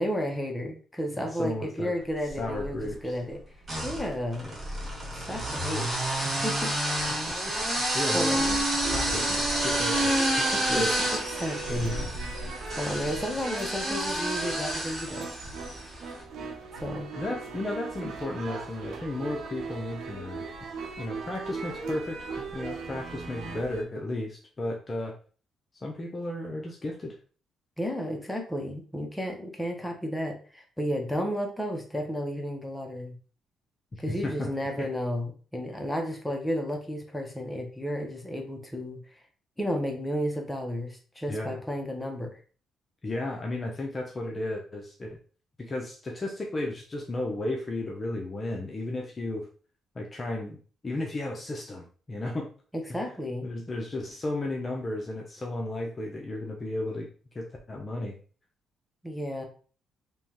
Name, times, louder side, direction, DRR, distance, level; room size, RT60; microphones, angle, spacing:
voice 1, 0.0-3.4 3.8-4.5 5.3-5.9 6.2-6.7 7.5-7.8 8.1-8.6 10.5-10.8 11.4-12.0 12.8-15.3 16.8-17.1 27.8-33.2 34.0-39.2 39.6-42.4 52.7-53.5 59.0-59.4, equal, 5° left, 2 dB, 1.0 m, -32 dB
voice 2, 1.1-2.0 2.4-3.2 4.4-4.6 6.4-6.5 7.1-8.6 8.9-10.9 17.1-20.4 21.0-25.2 25.8-27.1 33.9-34.5 34.8-34.9 41.3-41.6 43.0-45.2 45.6-49.5 49.9-50.6 50.8-52.5 52.9-53.1 53.4-57.1 57.3-58.1, left 2 dB, 30° left, 0 dB, 0.7 m, -34 dB
sound 1, 2.3-2.9 3.6-15.9, right 1 dB, 30° right, 1.6 m, -29 dB
sound 2, 8.8-23.8, right 4 dB, 75° right, 0.9 m, -39 dB
3.5 x 3.0 x 3.0 m, 0.39 s
cardioid pair, 90°, 0 cm